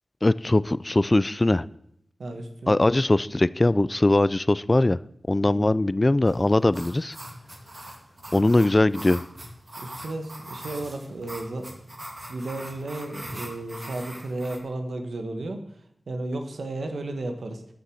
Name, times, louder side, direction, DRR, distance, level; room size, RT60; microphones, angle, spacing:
voice 1, 0.2-1.7 2.7-5.0 5.3-7.2 8.3-9.2, left 2 dB, 25° left, 18 dB, 0.3 m, -21 dB
voice 2, 2.2-2.8 5.4-5.8 8.3-8.7 9.8-11.9 12.3-15.6 16.1-17.7, right 2 dB, 75° right, 5 dB, 1.6 m, -34 dB
sound 1, 6.3-14.6, right 1 dB, 30° right, 2.5 m, -41 dB
13.0 x 6.8 x 6.4 m, 0.72 s
wide cardioid pair, 75°, 0 cm